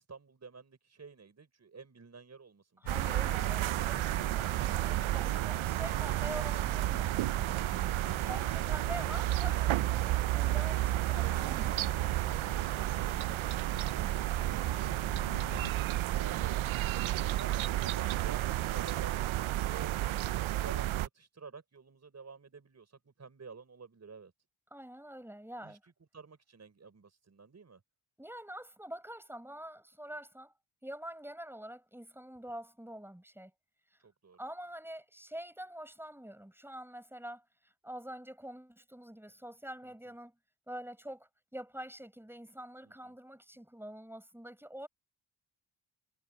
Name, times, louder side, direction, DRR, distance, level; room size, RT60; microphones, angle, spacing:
voice 1, 0.0-2.8 16.2-24.3 25.6-25.8 26.1-27.8 34.0-34.4 39.8-40.1 42.8-43.2, right 5 dB, 35° right, 5.6 m, -52 dB
sound 1, 2.8-15.7, left 11 dB, 65° left, 1.0 m, -51 dB
voice 2, 2.8-7.6 8.3-11.9 24.7-25.8 28.2-30.5 30.8-33.5 33.9-34.0 34.4-40.3 40.7-44.9, right 1 dB, 5° right, 5.5 m, -46 dB
sound 2, 2.9-21.1, right 15 dB, 85° right, 0.6 m, -31 dB
Trumpet, 7.4-13.7, left 10 dB, 80° left, 3.9 m, -63 dB
wide cardioid pair, 155°, 47 cm